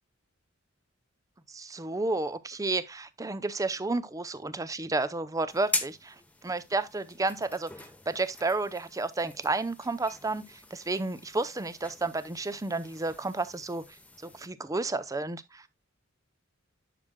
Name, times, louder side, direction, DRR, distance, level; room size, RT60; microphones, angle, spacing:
voice 1, 1.5-6.2 6.4-13.8 14.2-15.7, right 3 dB, 15° right, 0.6 m, -31 dB
sound 1, 5.5-14.5, left 2 dB, 5° left, 0.9 m, -41 dB
11.0 x 6.5 x 2.2 m
head